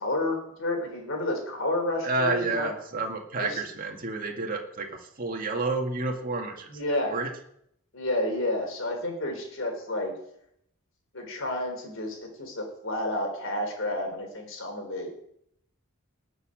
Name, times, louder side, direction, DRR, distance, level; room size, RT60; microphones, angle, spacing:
voice 1, 0.0-2.7 3.4-3.6 6.7-7.1 7.9-10.1 11.1-15.2, left 1 dB, 60° left, 3 dB, 4.0 m, -30 dB
voice 2, 2.0-6.7 7.0-7.3, right 3 dB, 40° right, 2 dB, 2.1 m, -30 dB
19.5 x 7.0 x 6.5 m, 0.72 s
head